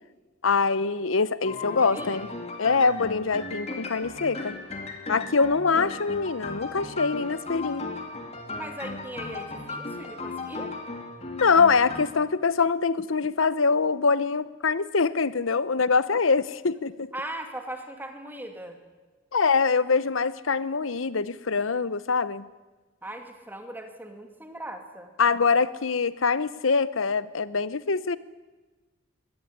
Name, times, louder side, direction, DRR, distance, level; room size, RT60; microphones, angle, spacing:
voice 1, 0.4-2.3 2.6-4.6 5.1-7.9 11.4-17.1 19.3-22.4 25.2-28.2, left 4 dB, 85° left, 16 dB, 0.9 m, -24 dB
sound 1, 1.4-12.0, left 3 dB, 35° left, 2.9 m, -36 dB
voice 2, 1.8-2.3 5.4-5.6 8.5-10.7 17.1-18.8 23.0-25.1, right 1 dB, 10° right, 5 dB, 2.3 m, -39 dB
23.0 x 18.0 x 9.7 m, 1.3 s
head